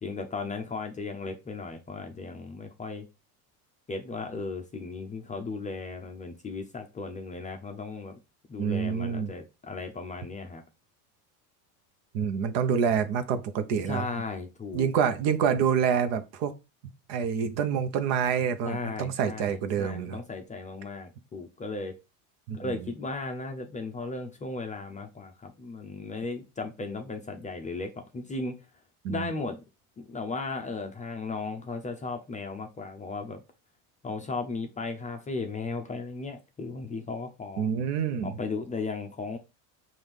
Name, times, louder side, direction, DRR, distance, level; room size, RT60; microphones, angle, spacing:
voice 1, 0.0-3.1 3.9-8.2 8.5-10.6 13.9-14.9 18.6-21.9 22.5-28.5 29.1-29.6 30.0-33.4 34.0-37.7 38.2-39.4, left 3 dB, 15° left, 0.5 m, -36 dB
voice 2, 8.6-9.3 12.1-14.2 14.7-16.5 17.1-20.2 22.5-22.9 29.0-29.3 37.6-38.3, right 7 dB, 60° right, 0.9 m, -27 dB
5.7 x 2.6 x 3.5 m
supercardioid pair, 120°, 46 cm